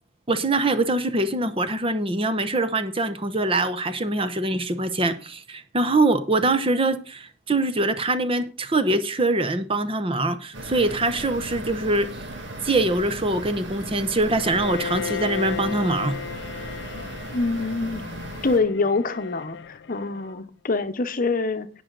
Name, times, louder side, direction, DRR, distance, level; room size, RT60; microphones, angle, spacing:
voice 1, 0.3-12.1 12.6-16.2, right 2 dB, 30° right, 0.9 m, -23 dB
sound 1, 10.5-18.6, right 1 dB, 75° right, 2.4 m, -37 dB
Bowed string instrument, 14.4-20.4, left 7 dB, 65° left, 0.5 m, -35 dB
voice 2, 17.3-18.1 18.4-21.7, left 3 dB, 45° left, 0.9 m, -25 dB
18.5 x 6.3 x 4.0 m
head